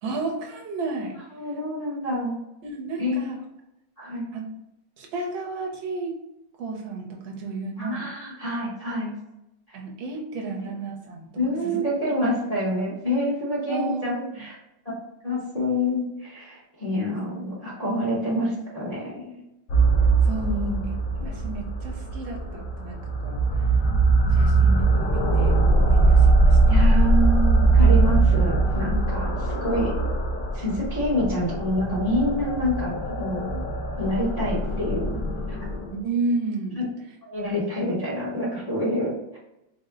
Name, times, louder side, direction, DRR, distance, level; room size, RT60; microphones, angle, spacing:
voice 1, 0.0-1.2 2.6-3.4 4.3-4.5 5.0-6.2 6.6-8.1 9.7-11.3 11.6-12.3 13.7-14.5 20.2-20.7 21.2-23.7 24.3-26.8 35.9-36.8, right 3 dB, 80° right, 1 dB, 1.5 m, -32 dB
voice 2, 1.4-2.3 3.0-3.2 4.0-4.3 7.8-9.1 10.6-10.7 11.4-14.5 14.8-14.9 15.2-19.3 20.4-20.9 26.7-29.9 30.5-33.6 34.0-35.1 35.5-35.6 37.2-39.4, left 1 dB, 30° left, -7 dB, 0.8 m, -27 dB
sound 1, 19.7-35.9, right 3 dB, 70° left, 0.8 m, -21 dB
4.1 x 2.1 x 3.7 m, 0.89 s
omnidirectional pair, 2.1 m